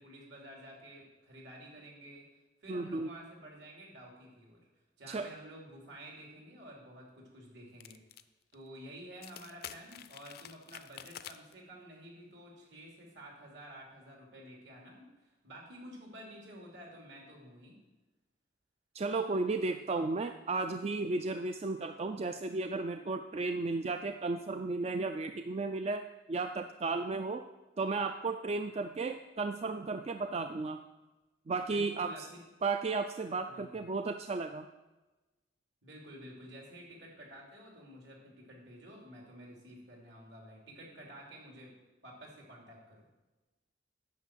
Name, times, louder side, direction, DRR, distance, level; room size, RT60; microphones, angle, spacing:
voice 1, 0.0-2.2 2.6-4.6 5.0-8.0 8.5-17.8 31.7-32.4 33.5-33.8 35.8-41.7 42.0-43.1, equal, 70° right, -1 dB, 3.0 m, -51 dB
voice 2, 2.7-3.1 5.1-5.3 18.9-27.4 27.8-30.8 31.5-32.3 32.6-34.7, right 3 dB, 35° right, 8 dB, 0.4 m, -34 dB
sound 1, 7.8-8.2 8.5-8.6 9.1-11.5, left 10 dB, 55° left, 0.5 m, -48 dB
9.5 x 6.1 x 7.4 m, 1.1 s
head